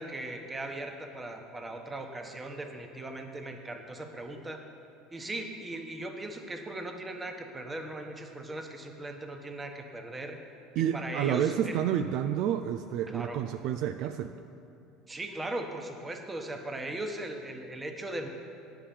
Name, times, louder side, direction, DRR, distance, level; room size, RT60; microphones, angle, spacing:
voice 1, 0.0-4.7 5.1-10.4 10.8-11.8 13.1-13.4 15.1-18.3, right 1 dB, 20° right, 5 dB, 1.2 m, -38 dB
voice 2, 10.8-14.3, right 9 dB, 60° right, 8 dB, 0.4 m, -29 dB
9.8 x 5.8 x 7.0 m, 2.6 s
hypercardioid pair, 75°, 0 cm